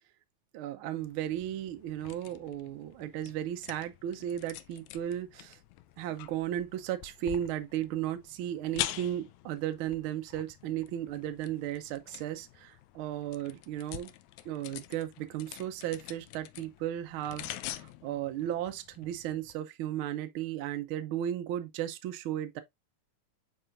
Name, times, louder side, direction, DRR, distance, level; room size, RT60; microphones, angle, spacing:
voice 1, 0.5-5.6 6.0-14.1 14.4-22.6, right 11 dB, 80° right, 1.1 m, -35 dB
sound 1, 1.0-19.5, left 14 dB, 80° left, 1.9 m, -45 dB
7.8 x 4.9 x 2.5 m
omnidirectional pair, 3.3 m